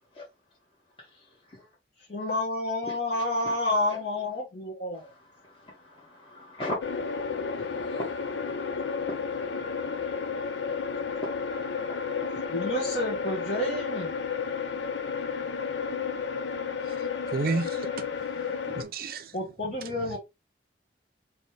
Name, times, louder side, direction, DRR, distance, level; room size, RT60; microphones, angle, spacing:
voice 1, 2.1-5.1 12.5-14.1 19.3-20.2, left 1 dB, 55° left, 1.4 m, -29 dB
voice 2, 3.4-4.0 5.4-8.3 11.9-12.3, left 1 dB, 30° left, 1.4 m, -39 dB
sound 1, 6.8-18.8, left 5 dB, 85° left, 0.6 m, -32 dB
voice 3, 17.3-18.1 18.7-19.4 19.8-20.2, right 3 dB, 55° right, 0.6 m, -32 dB
4.2 x 3.0 x 3.3 m
head